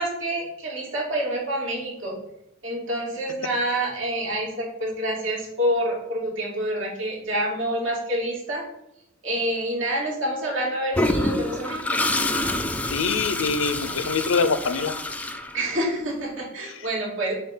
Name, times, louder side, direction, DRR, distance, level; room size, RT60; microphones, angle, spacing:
voice 1, 0.0-2.2 2.6-8.6 9.2-12.0 15.5-17.3, right 1 dB, 70° right, -3 dB, 2.1 m, -27 dB
Toilet flush, 10.9-16.0, left 1 dB, 5° left, 0.3 m, -27 dB
voice 2, 12.9-14.9, left 5 dB, 85° left, 11 dB, 0.6 m, -24 dB
7.1 x 2.4 x 5.5 m, 0.83 s
head